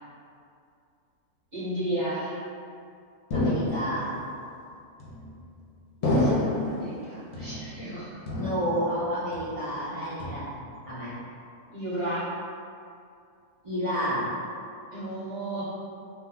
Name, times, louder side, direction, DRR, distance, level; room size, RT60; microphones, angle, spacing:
voice 1, 1.5-2.3 6.0-8.2 11.7-12.3 14.9-15.6, right 1 dB, 35° right, -11 dB, 0.8 m, -33 dB
sound 1, 3.3-4.2 5.0-5.5 6.0-6.8 7.3-7.9 8.3-9.0 9.3-9.8 10.2-10.8, left 1 dB, 60° left, 0.9 m, -28 dB
voice 2, 3.3-4.1 8.4-10.5 10.9-11.1 13.6-14.4, equal, 55° right, -13 dB, 0.3 m, -30 dB
2.7 x 2.1 x 3.7 m, 2.4 s
omnidirectional pair, 1.6 m